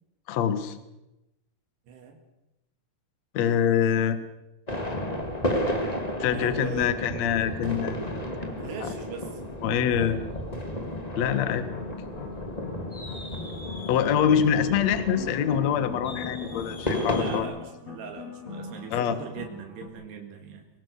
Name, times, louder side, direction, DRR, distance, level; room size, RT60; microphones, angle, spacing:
voice 1, 0.3-0.8 3.3-4.2 6.2-8.7 9.6-10.2 11.2-11.6 13.9-17.5 18.9-19.2, left 8 dB, 55° left, 11 dB, 2.1 m, -25 dB
voice 2, 1.9-2.2 6.3-7.2 8.6-9.4 17.1-20.7, right 6 dB, 85° right, 4 dB, 4.0 m, -40 dB
sound 1, 4.7-17.4, left 1 dB, 15° left, 1.3 m, -33 dB
sound 2, 11.3-19.9, left 5 dB, 40° left, 4.5 m, -41 dB
24.0 x 21.5 x 6.7 m, 0.95 s
omnidirectional pair, 4.7 m